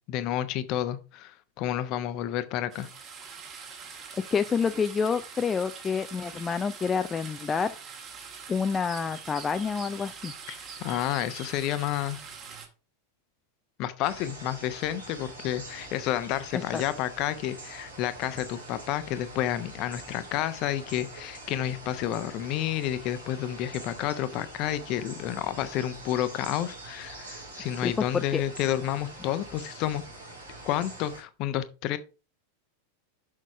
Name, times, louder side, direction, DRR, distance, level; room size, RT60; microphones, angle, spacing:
voice 1, 0.1-2.9 10.5-12.2 13.8-30.0 30.6-32.0, left 12 dB, 40° left, 0.8 m, -30 dB
sound 1, 2.7-12.7, right 6 dB, 30° right, 1.9 m, -44 dB
voice 2, 4.3-7.7 8.5-10.3 16.5-16.8 27.8-28.4, left 6 dB, 20° left, 0.4 m, -28 dB
sound 2, 14.0-31.2, right 2 dB, 80° right, 3.4 m, -44 dB
6.6 x 6.1 x 4.7 m
figure-of-eight pair, 90°, 0 cm